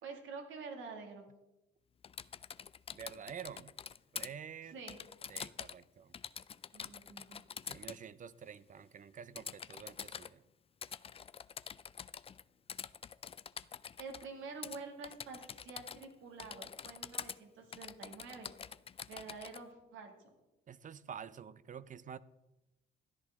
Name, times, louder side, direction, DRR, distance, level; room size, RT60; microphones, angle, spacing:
voice 1, 0.0-1.3 4.7-5.0 6.7-7.4 14.0-18.5 19.1-20.1, right 4 dB, 80° right, 2.1 m, -48 dB
Typing, 2.0-4.3 4.9-5.8 6.1-8.0 9.4-10.3 10.8-12.4 12.7-14.3 14.6-14.8 15.0-16.1 16.4-17.4 17.7-19.6, left 7 dB, 30° left, 0.4 m, -46 dB
voice 2, 2.9-3.7 4.1-4.8 5.3-6.1 7.7-10.4 20.7-22.2, right 7 dB, 40° right, 0.5 m, -48 dB
13.5 x 10.5 x 3.6 m
cardioid pair, 90°, 20 cm